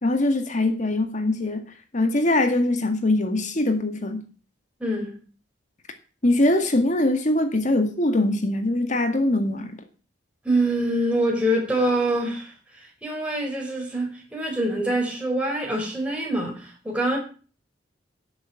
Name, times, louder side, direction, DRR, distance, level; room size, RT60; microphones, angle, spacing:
voice 1, 0.0-1.6 1.9-4.2 6.2-9.7, left 1 dB, 40° left, 1.9 m, -22 dB
voice 2, 4.8-5.2 10.4-12.5 13.0-17.2, right 1 dB, 5° right, 5.0 m, -25 dB
12.5 x 8.3 x 8.2 m
head